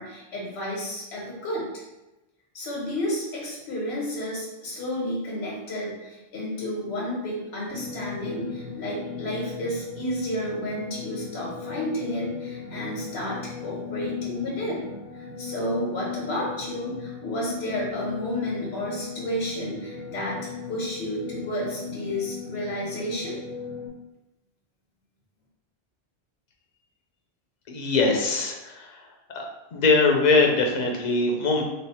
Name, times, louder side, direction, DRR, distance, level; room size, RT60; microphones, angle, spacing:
voice 1, 0.0-1.7 2.5-14.8 15.1-23.4, equal, 80° left, -4 dB, 1.1 m, -31 dB
sound 1, 7.7-23.9, left 6 dB, 65° right, 1.3 m, -37 dB
voice 2, 27.7-29.4 29.7-31.6, left 3 dB, 50° left, 1 dB, 0.6 m, -22 dB
3.1 x 2.0 x 4.1 m, 0.98 s
omnidirectional pair, 1.1 m